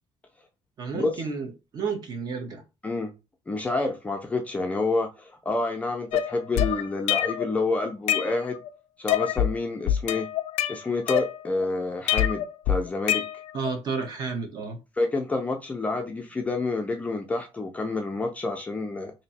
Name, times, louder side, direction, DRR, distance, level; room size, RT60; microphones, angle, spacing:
voice 1, 0.8-2.6 13.5-14.8, right 4 dB, 40° right, 5 dB, 0.9 m, -31 dB
voice 2, 3.5-8.6 9.0-10.3 10.7-13.2 15.0-19.1, left 3 dB, 15° left, 2 dB, 0.4 m, -28 dB
sound 1, 6.1-7.5 7.9-8.7 9.1-9.5 9.9-11.7 12.1-13.7, left 11 dB, 90° left, 0.4 m, -26 dB
3.1 x 2.6 x 4.1 m, 0.26 s
cardioid pair, 175°, 11 cm